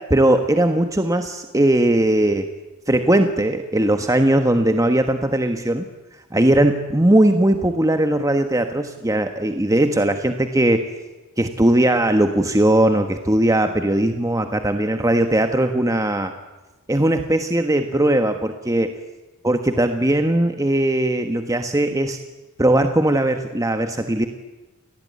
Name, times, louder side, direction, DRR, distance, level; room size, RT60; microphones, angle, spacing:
voice 1, 0.0-2.5 2.9-5.8 6.3-10.8 11.4-16.3 16.9-18.9 19.4-22.2 22.6-24.3, right 1 dB, 15° right, 7 dB, 1.4 m, -19 dB
28.5 x 20.0 x 9.5 m, 1.2 s
head